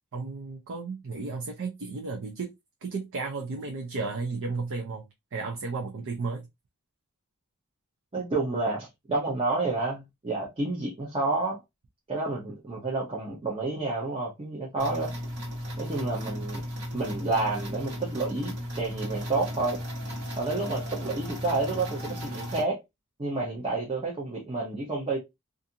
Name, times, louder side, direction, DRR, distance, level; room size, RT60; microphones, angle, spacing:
voice 1, 0.1-2.5 2.8-6.5, right 4 dB, 60° right, 0.5 m, -33 dB
voice 2, 8.1-11.6 12.1-15.1 15.8-16.6 16.9-19.8 20.4-22.8 23.2-25.2, right 3 dB, 25° right, 0.7 m, -29 dB
sound 1, 14.8-22.6, equal, 85° right, 1.3 m, -35 dB
2.5 x 2.5 x 2.7 m
head